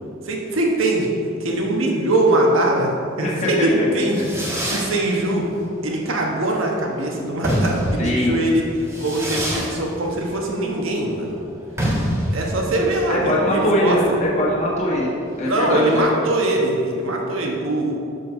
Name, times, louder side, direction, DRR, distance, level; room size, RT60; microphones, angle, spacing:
voice 1, 0.2-1.1 1.4-2.9 3.2-5.4 5.8-8.6 9.0-11.4 12.3-14.0 15.4-18.0, right 1 dB, 85° right, 0 dB, 1.2 m, -22 dB
voice 2, 3.2-4.2 8.0-8.3 13.1-16.2, left 1 dB, 35° left, -5 dB, 1.5 m, -22 dB
Fireworks, 3.8-16.0, equal, 15° right, 1.5 m, -28 dB
6.0 x 5.2 x 5.5 m, 2.5 s
head